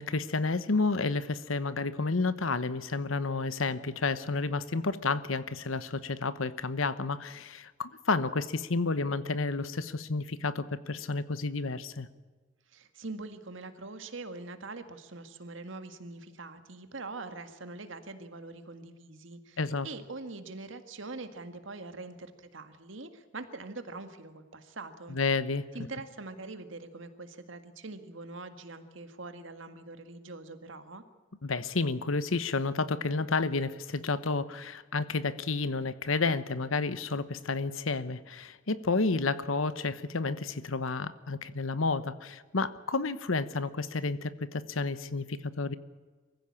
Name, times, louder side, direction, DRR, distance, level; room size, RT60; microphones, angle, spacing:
voice 1, 0.0-12.1 19.6-19.9 25.1-25.6 31.4-45.8, left 3 dB, 90° left, 14 dB, 1.1 m, -31 dB
voice 2, 12.7-19.6 19.8-25.2 25.7-31.0, right 3 dB, 75° right, 8 dB, 1.8 m, -43 dB
23.5 x 15.5 x 8.7 m, 1.4 s
head